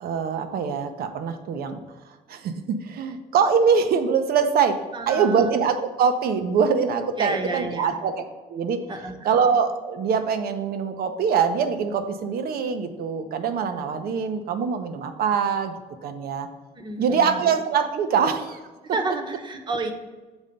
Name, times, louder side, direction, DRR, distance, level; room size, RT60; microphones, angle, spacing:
voice 1, 0.0-1.8 2.3-4.8 5.1-8.2 8.5-8.8 9.2-15.7 16.0-16.5 17.0-18.6, right 6 dB, 65° right, 8 dB, 0.8 m, -23 dB
voice 2, 4.9-5.7 7.2-8.0 8.9-9.2 16.7-17.4 18.9-19.9, right 2 dB, 25° right, 5 dB, 1.0 m, -30 dB
7.1 x 4.0 x 5.2 m, 1.3 s
cardioid pair, 110°, 17 cm